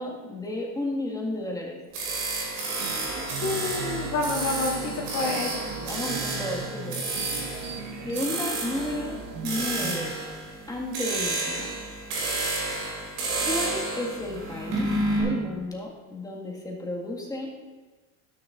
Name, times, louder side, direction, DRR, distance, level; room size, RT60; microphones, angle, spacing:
voice 1, 0.0-1.8 5.8-7.1 8.0-9.2 9.4-10.1 10.7-11.7 13.4-17.6, left 1 dB, 10° left, -2 dB, 1.8 m, -32 dB
sound 1, 1.9-15.2, right 2 dB, 90° right, 2.7 m, -31 dB
sound 2, 2.8-10.2, right 7 dB, 55° right, 0.9 m, -38 dB
voice 2, 3.4-5.5, left 3 dB, 65° left, -10 dB, 2.3 m, -28 dB
12.5 x 6.3 x 2.5 m, 1.3 s
supercardioid pair, 95°, 31 cm